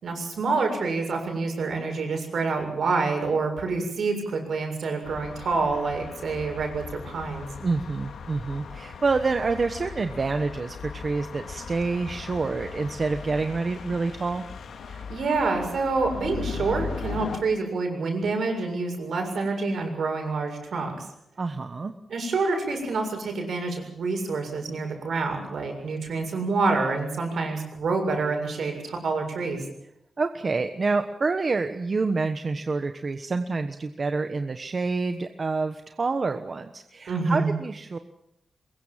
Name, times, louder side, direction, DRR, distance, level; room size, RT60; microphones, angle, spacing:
voice 1, 0.0-7.5 14.9-21.1 22.1-29.6 37.1-37.5, right 3 dB, 70° right, 4 dB, 7.2 m, -27 dB
sound 1, 5.0-17.4, left 6 dB, 85° left, 2.4 m, -38 dB
voice 2, 7.6-14.4 21.4-21.9 30.2-38.0, right 4 dB, 40° right, 8 dB, 1.2 m, -27 dB
23.5 x 22.0 x 7.5 m, 0.80 s
wide cardioid pair, 125°, 0 cm